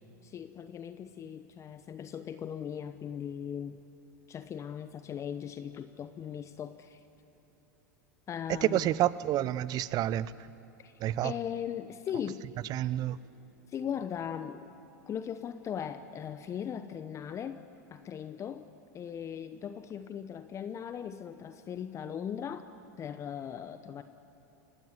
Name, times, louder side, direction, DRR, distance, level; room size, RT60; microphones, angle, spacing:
voice 1, 0.2-3.8 4.3-7.0 8.3-8.9 10.8-10.9 11.2-12.4 13.7-14.7 15.1-18.6 18.9-22.6 23.0-24.0, left 8 dB, 30° left, 0.9 m, -39 dB
voice 2, 8.6-10.3 11.0-11.3 12.7-13.2, right 13 dB, 40° right, 0.7 m, -28 dB
29.5 x 16.5 x 9.7 m
hypercardioid pair, 105°, 10 cm